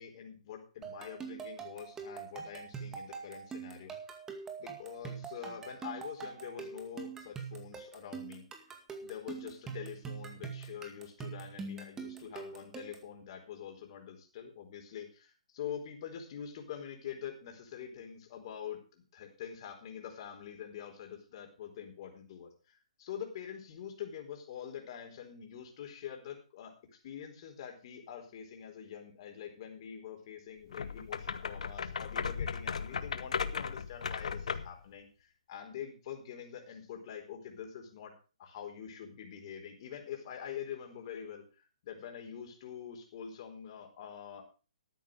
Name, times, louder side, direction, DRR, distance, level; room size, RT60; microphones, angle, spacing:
voice 1, 0.0-3.9 4.6-8.7 9.0-38.1 38.4-44.4, left 8 dB, 45° left, 3 dB, 4.4 m, -45 dB
sound 1, 0.8-13.1, right 5 dB, 15° right, 2.1 m, -44 dB
sound 2, 30.7-34.8, left 6 dB, 70° left, 1.2 m, -36 dB
13.0 x 9.3 x 5.0 m, 0.34 s
hypercardioid pair, 140°, 4 cm